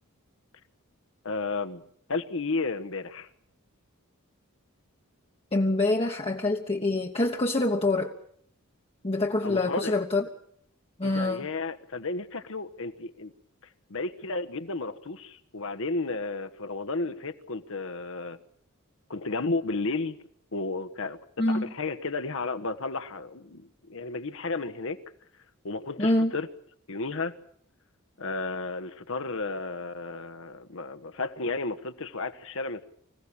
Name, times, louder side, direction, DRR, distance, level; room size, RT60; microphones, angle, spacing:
voice 1, 1.2-1.8 2.1-3.3 9.4-9.9 11.0-13.3 13.9-18.4 19.1-20.2 20.5-21.2 21.6-25.0 25.6-26.5 26.9-27.3 28.2-32.9, left 3 dB, 65° left, 1.4 m, -33 dB
voice 2, 5.5-8.2 9.0-10.2 11.0-11.5 21.4-21.7 26.0-26.3, left 2 dB, 25° left, 1.2 m, -25 dB
25.5 x 16.5 x 8.7 m
head